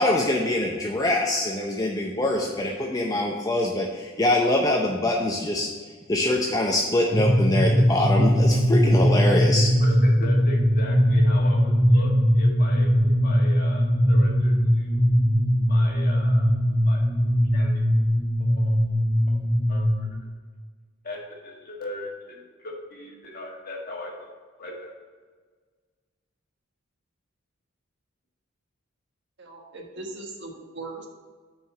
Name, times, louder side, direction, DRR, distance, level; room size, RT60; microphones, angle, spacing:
voice 1, 0.0-5.7 6.1-9.7, left 1 dB, 20° left, -1 dB, 0.6 m, -24 dB
sound 1, 7.1-20.1, equal, 30° right, 1.9 m, -20 dB
voice 2, 9.8-15.1 15.7-16.5 16.9-17.0 17.5-17.8 18.4-18.8 19.7-20.1 21.0-24.3 24.6-24.9, left 1 dB, 45° left, -1 dB, 1.6 m, -38 dB
voice 3, 29.4-31.1, right 2 dB, 60° right, 1 dB, 1.3 m, -39 dB
6.1 x 4.8 x 6.4 m, 1.5 s
head